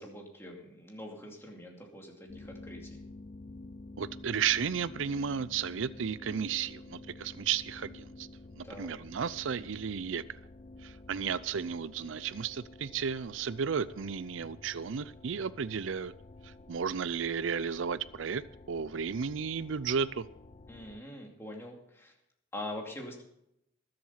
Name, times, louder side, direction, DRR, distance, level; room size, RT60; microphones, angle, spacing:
voice 1, 0.0-3.0 8.6-8.9 20.7-22.1 22.5-23.2, left 1 dB, 15° left, 0 dB, 2.5 m, -44 dB
sound 1, 2.3-21.0, left 2 dB, 30° left, 0.4 m, -50 dB
voice 2, 4.0-8.3 8.6-10.4 10.8-16.1 16.4-18.4 18.7-20.3, right 6 dB, 80° right, 16 dB, 0.5 m, -33 dB
20.0 x 7.8 x 5.7 m, 0.79 s
head